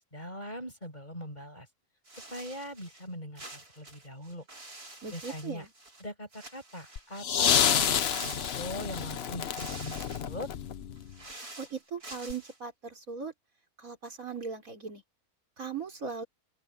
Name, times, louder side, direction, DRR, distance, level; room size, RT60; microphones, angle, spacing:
voice 1, 0.1-1.7 2.3-4.4 5.1-5.6 6.0-7.9 8.2-10.5, equal, 30° left, 7.6 m, -41 dB
sound 1, 2.1-3.1 3.4-6.1 6.3-7.2 8.0-9.0 9.4-10.3 11.0-12.6, right 2 dB, 80° right, 7.1 m, -47 dB
voice 2, 5.0-5.7 11.6-13.3 13.8-15.0 15.6-16.2, right 5 dB, 60° right, 4.7 m, -39 dB
sound 2, 7.0-11.1 12.3-12.4, left 8 dB, 50° left, 0.9 m, -29 dB
open air
omnidirectional pair, 1.6 m